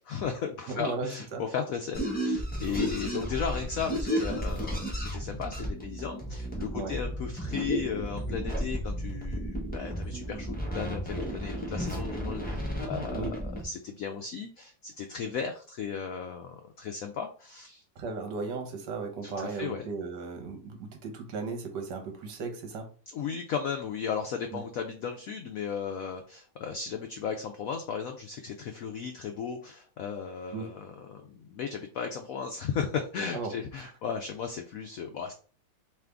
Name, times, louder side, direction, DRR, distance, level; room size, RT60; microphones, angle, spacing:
voice 1, 0.0-17.8 19.2-19.9 23.1-35.3, left 6 dB, 90° left, 5 dB, 0.7 m, -35 dB
voice 2, 0.7-1.4 6.7-7.0 13.1-13.3 18.0-22.9 24.5-24.6 30.5-30.7 33.3-33.5 33.8-33.9, right 4 dB, 70° right, 4 dB, 1.5 m, -36 dB
sound 1, 1.9-13.6, equal, 10° left, 0.5 m, -33 dB
3.4 x 3.2 x 3.7 m, 0.40 s
omnidirectional pair, 2.1 m